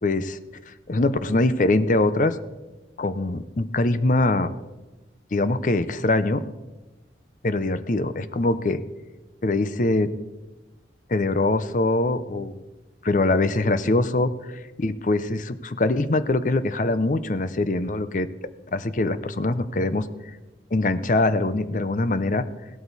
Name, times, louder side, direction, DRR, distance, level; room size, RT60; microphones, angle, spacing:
voice 1, 0.0-0.4 0.7-2.4 3.0-4.5 5.3-6.4 7.4-8.8 9.4-10.1 11.1-12.6 13.0-14.3 14.8-18.3 18.7-20.1 20.7-22.4, left 2 dB, 45° left, 13 dB, 0.6 m, -23 dB
16.0 x 12.5 x 4.1 m, 1.1 s
head